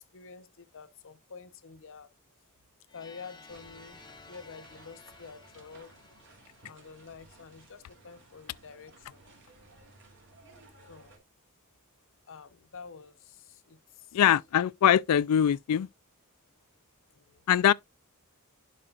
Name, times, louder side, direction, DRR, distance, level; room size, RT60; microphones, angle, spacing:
voice 1, 0.0-2.1 2.9-6.3 6.7-9.2 10.9-11.1 12.3-14.2 17.1-17.4, left 5 dB, 60° left, 0.7 m, -49 dB
sound 1, 2.9-7.7, left 4 dB, 20° left, 0.7 m, -55 dB
sound 2, 3.5-11.2, right 2 dB, 60° right, 2.7 m, -57 dB
voice 2, 14.1-15.9 17.5-17.7, left 9 dB, 80° left, 0.4 m, -22 dB
11.0 x 4.9 x 2.4 m
head